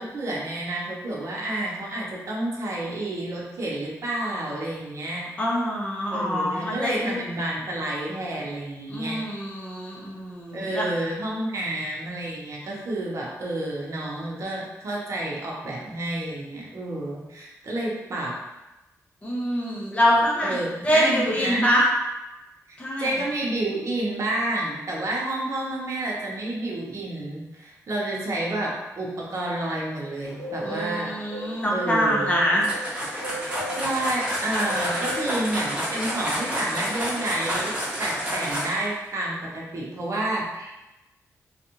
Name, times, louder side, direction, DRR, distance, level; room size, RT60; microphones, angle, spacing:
voice 1, 0.0-5.3 6.1-9.3 10.5-18.3 20.4-21.7 22.7-31.1 31.7-32.4 33.7-37.7 38.0-40.7, right 1 dB, 60° right, -4 dB, 0.8 m, -30 dB
voice 2, 5.4-7.2 8.9-10.9 19.2-20.6 20.8-21.8 22.8-23.1 30.6-32.7, equal, 20° left, -4 dB, 0.8 m, -24 dB
Bird, 30.2-38.5, equal, 60° left, 1.0 m, -38 dB
sound 1, 32.6-38.9, equal, 15° right, 1.1 m, -29 dB
3.4 x 2.4 x 2.9 m, 1.0 s
wide cardioid pair, 115°, 6 cm